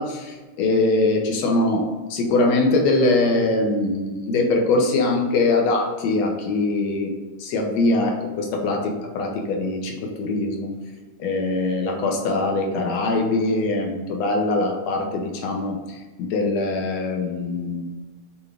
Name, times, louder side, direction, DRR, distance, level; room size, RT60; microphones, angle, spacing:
voice 1, 0.0-7.1 7.4-10.7 11.2-18.0, left 2 dB, 65° left, 2 dB, 1.9 m, -22 dB
7.7 x 3.7 x 3.5 m, 1.3 s
omnidirectional pair, 3.7 m